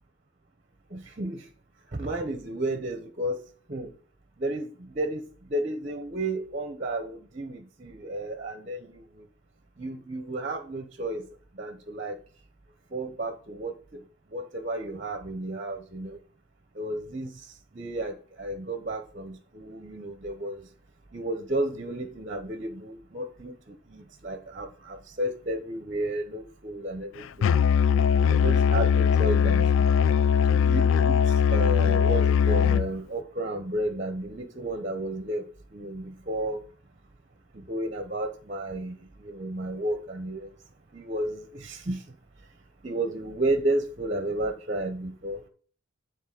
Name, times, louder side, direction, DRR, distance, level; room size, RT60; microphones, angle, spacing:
voice 1, 0.9-1.4 1.9-3.4 3.7-3.9 4.4-5.2 5.5-9.0 9.8-11.3 11.6-12.2 12.9-14.0 14.3-16.2 16.8-17.3 17.7-20.6 21.1-23.5 23.9-27.6 28.2-29.9 30.5-31.2 31.5-35.4 35.7-36.6 37.7-39.0 39.2-40.5 40.9-42.0 42.8-45.4, right 1 dB, 35° right, 0.9 m, -32 dB
Musical instrument, 27.4-32.9, left 7 dB, 65° left, 0.3 m, -21 dB
10.0 x 4.0 x 6.5 m
head